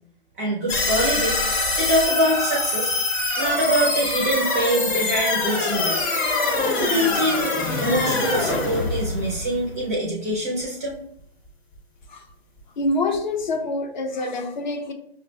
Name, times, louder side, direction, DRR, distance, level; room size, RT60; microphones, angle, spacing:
voice 1, 0.4-1.4 1.8-2.9 3.4-6.0 6.7-11.0, right 1 dB, 15° right, 0.4 m, -24 dB
sound 1, 0.7-9.9, left 3 dB, 20° left, 0.8 m, -24 dB
voice 2, 12.8-14.9, left 2 dB, 45° left, 0.6 m, -26 dB
5.5 x 2.1 x 2.7 m
hypercardioid pair, 140°, 31 cm